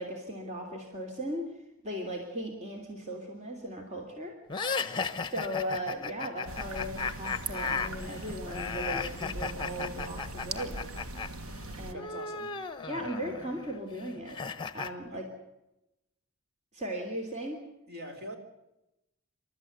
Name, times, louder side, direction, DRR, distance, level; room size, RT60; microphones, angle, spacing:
voice 1, 0.0-1.4 1.8-4.3 5.3-10.8 11.8-12.1 12.9-14.4 14.7-15.2 16.7-17.6, equal, 35° right, 2 dB, 3.1 m, -37 dB
sound 1, 4.5-11.3 11.5-14.9, left 5 dB, 20° left, 1.1 m, -35 dB
voice 2, 4.8-5.1 11.9-12.6 15.1-15.2 17.9-18.4, equal, 50° right, 4 dB, 3.9 m, -44 dB
sound 2, 6.5-11.9, right 2 dB, 90° right, 1.5 m, -40 dB
28.5 x 13.0 x 8.2 m, 0.91 s
head